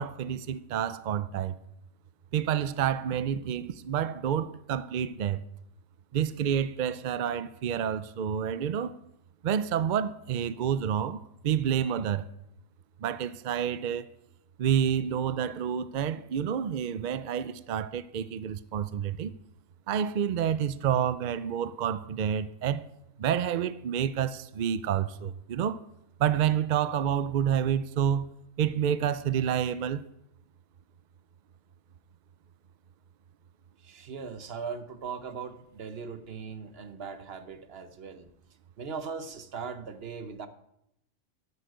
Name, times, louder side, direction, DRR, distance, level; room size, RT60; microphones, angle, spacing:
voice 1, 0.0-1.6 2.3-5.4 6.1-9.0 9.4-12.3 13.0-14.1 14.6-19.3 19.9-22.8 23.2-25.8 26.2-28.3 28.6-30.0, right 9 dB, 70° right, 0.4 m, -29 dB
voice 2, 33.8-38.3 38.8-40.5, right 5 dB, 50° right, 1.1 m, -39 dB
10.0 x 8.1 x 9.3 m
omnidirectional pair, 1.4 m